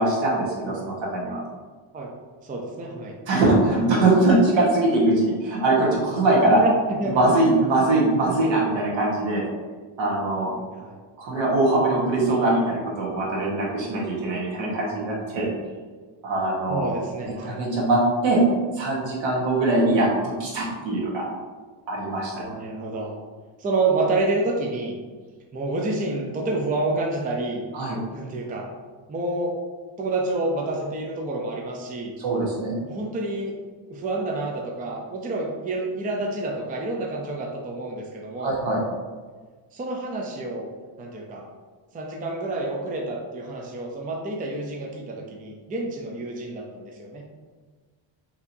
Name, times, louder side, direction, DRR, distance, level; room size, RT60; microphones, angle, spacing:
voice 1, 0.0-1.4 3.3-6.6 7.0-9.5 10.0-10.5 11.2-15.5 16.2-16.9 17.2-18.4 18.8-21.2 21.9-22.4 27.7-28.0 32.2-32.8 38.4-38.8, right 2 dB, 70° right, -4 dB, 1.5 m, -22 dB
voice 2, 2.4-3.2 6.5-7.3 10.6-11.0 16.7-17.6 22.4-23.1 23.6-25.0 25.5-27.6 28.1-28.7 29.1-29.6 30.0-32.1 32.9-33.5 33.9-38.6 39.7-40.7 41.0-41.4 41.9-47.2, right 2 dB, 20° right, 0 dB, 0.4 m, -28 dB
4.4 x 3.5 x 2.7 m, 1.4 s
cardioid pair, 130°, 47 cm